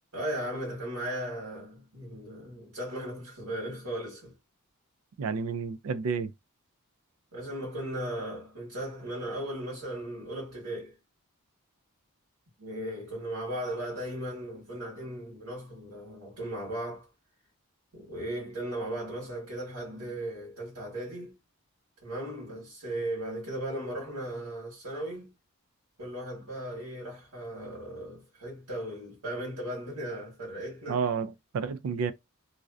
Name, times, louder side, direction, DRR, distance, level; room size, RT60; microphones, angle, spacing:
voice 1, 0.1-4.3 7.3-11.0 12.6-17.1 17.9-21.3 22.0-25.3 26.0-31.0, right 1 dB, 90° right, 1.3 m, -37 dB
voice 2, 5.2-6.3 30.9-32.1, right 5 dB, 70° right, 0.3 m, -30 dB
2.6 x 2.1 x 2.3 m
head